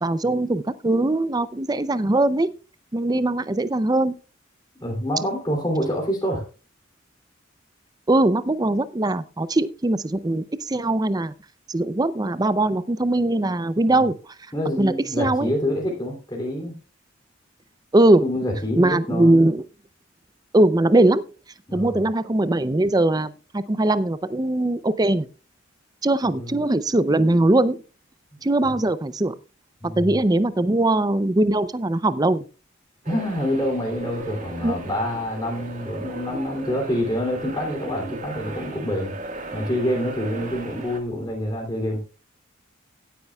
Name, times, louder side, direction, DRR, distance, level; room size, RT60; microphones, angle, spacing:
voice 1, 0.0-2.5 2.9-4.1 8.1-11.3 11.7-14.1 14.8-15.5 17.9-18.3 18.8-19.6 20.5-21.2 21.7-25.3 26.0-27.8 28.4-29.4 29.8-32.4 34.6-34.8, right 2 dB, 20° right, 15 dB, 0.5 m, -21 dB
voice 2, 4.8-6.4 13.9-14.0 14.5-16.7 18.2-19.4 21.7-22.0 26.2-26.6 28.3-28.8 29.8-30.1 33.0-39.1 39.5-42.0, equal, 20° left, -1 dB, 2.9 m, -27 dB
sound 1, 33.0-41.0, right 2 dB, 40° right, 1.7 m, -36 dB
17.0 x 9.6 x 2.3 m, 0.34 s
head